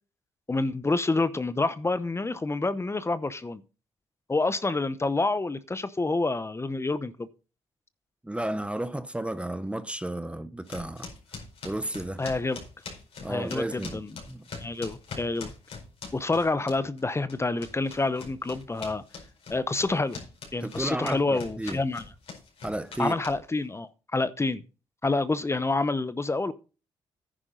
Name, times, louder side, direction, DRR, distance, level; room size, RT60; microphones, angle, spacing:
voice 1, 0.5-3.6 4.3-7.3 12.2-12.6 13.3-14.1 14.6-15.5 16.1-19.0 19.5-20.2 20.5-22.0 23.0-24.6 25.0-26.5, left 3 dB, 25° left, 0.9 m, -28 dB
voice 2, 8.2-11.1 11.6-12.2 13.2-14.0 14.3-14.5 20.6-21.8 22.6-23.2, right 1 dB, 10° right, 0.8 m, -32 dB
sound 1, 10.7-17.0 17.3-23.7, left 4 dB, 65° left, 4.8 m, -42 dB
10.0 x 9.7 x 3.9 m
supercardioid pair, 55°, 11 cm